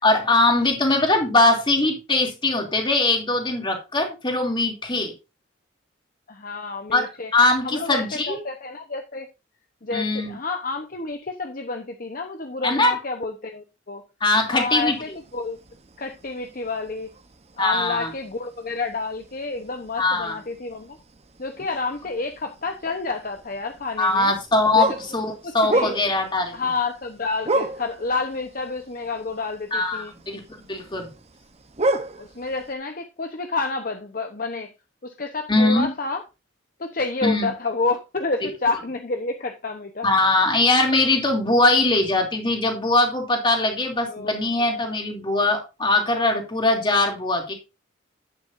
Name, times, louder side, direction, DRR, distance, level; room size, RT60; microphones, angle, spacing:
voice 1, 0.0-5.1 6.9-8.4 9.9-10.3 12.6-12.9 14.2-15.2 17.6-18.1 20.0-20.3 24.0-26.5 29.7-30.4 30.7-31.1 35.5-35.9 37.2-37.5 40.0-47.5, left 2 dB, 25° left, 2 dB, 2.9 m, -21 dB
voice 2, 6.3-7.3 7.6-9.3 9.8-14.0 14.5-15.6 16.0-17.1 17.6-21.0 21.4-24.3 24.7-24.8 25.4-25.9 26.5-30.1 32.2-34.7 35.0-36.2 36.8-40.1 44.1-44.7, left 3 dB, 45° left, 5 dB, 0.9 m, -29 dB
sound 1, 14.5-32.7, right 2 dB, 30° right, 0.9 m, -33 dB
11.0 x 9.6 x 2.6 m, 0.27 s
head